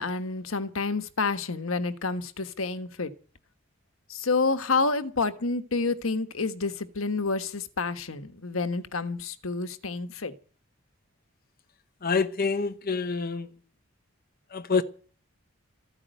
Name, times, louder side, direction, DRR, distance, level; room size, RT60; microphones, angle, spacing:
voice 1, 0.0-3.1 4.1-10.3, left 3 dB, 85° left, 1.4 m, -29 dB
voice 2, 12.0-13.5 14.5-14.8, left 4 dB, 45° left, 0.9 m, -26 dB
14.5 x 9.8 x 9.1 m
head